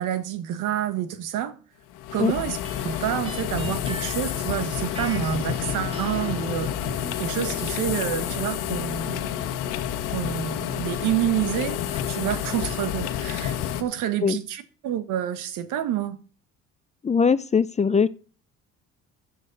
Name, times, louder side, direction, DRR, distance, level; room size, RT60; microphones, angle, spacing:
voice 1, 0.0-1.5 2.1-2.6 2.8-6.7 7.2-9.2 10.1-11.8 12.1-16.2, right 11 dB, 70° right, 1.5 m, -28 dB
sound 1, 1.9-13.8, left 10 dB, 75° left, 1.3 m, -29 dB
sound 2, 2.6-12.2, right 2 dB, 20° right, 2.2 m, -43 dB
voice 2, 17.0-18.1, left 5 dB, 20° left, 0.5 m, -21 dB
14.5 x 8.6 x 4.1 m
supercardioid pair, 90°, 32 cm